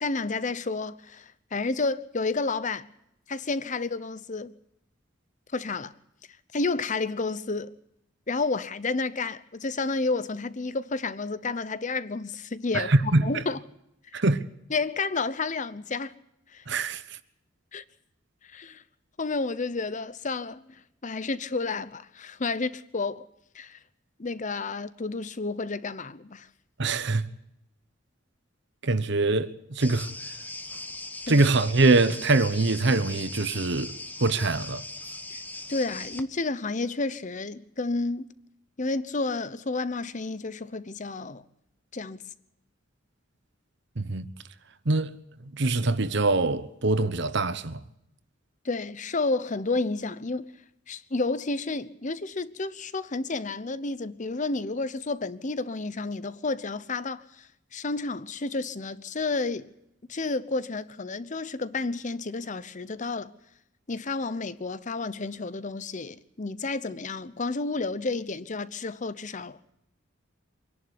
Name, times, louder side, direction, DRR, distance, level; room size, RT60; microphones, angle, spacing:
voice 1, 0.0-2.9 3.3-4.5 5.5-5.9 6.5-7.7 8.3-13.6 14.7-16.2 16.5-16.6 17.7-17.8 18.4-18.8 19.2-23.3 23.5-23.8 24.2-26.5 31.3-31.4 35.3-35.4 35.7-38.3 38.8-41.4 41.9-42.2 48.6-50.5 50.9-59.7 60.1-63.3 63.9-69.6, left 3 dB, 40° left, 0.8 m, -31 dB
voice 2, 12.7-13.4 14.1-14.4 16.7-17.2 26.8-27.3 28.8-30.1 31.3-33.9 34.2-34.8 44.0-44.3 44.8-45.1 45.4-47.8, right 3 dB, 65° right, 1.0 m, -24 dB
sound 1, 29.8-36.2, left 2 dB, 10° left, 1.1 m, -39 dB
24.5 x 11.0 x 9.7 m
head